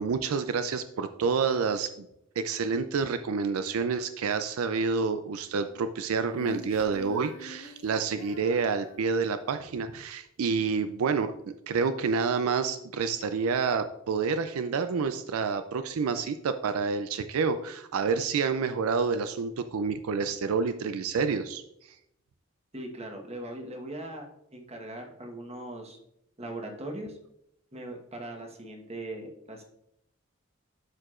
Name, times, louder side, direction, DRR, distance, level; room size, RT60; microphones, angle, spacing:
voice 1, 0.0-2.1 2.4-11.3 11.7-21.6, right 5 dB, 80° right, 10 dB, 0.4 m, -28 dB
Female singing, 6.3-9.9, left 2 dB, 65° left, 1.5 m, -46 dB
voice 2, 22.7-24.3 24.5-26.0 26.4-27.2 27.7-29.6, right 1 dB, 30° right, 1 dB, 1.2 m, -39 dB
12.0 x 4.7 x 2.5 m, 0.79 s
head